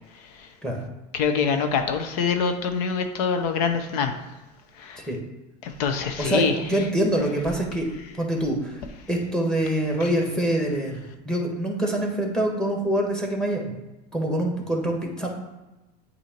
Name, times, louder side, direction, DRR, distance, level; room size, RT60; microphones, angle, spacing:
voice 1, 1.1-4.1 4.8-5.0 5.6-6.5, left 6 dB, 70° left, 7 dB, 0.8 m, -24 dB
voice 2, 6.2-7.9 8.2-8.8 9.1-13.7 14.1-15.3, right 1 dB, 5° left, 1 dB, 1.4 m, -25 dB
8.1 x 2.8 x 4.4 m, 1.0 s
supercardioid pair, 110°, 21 cm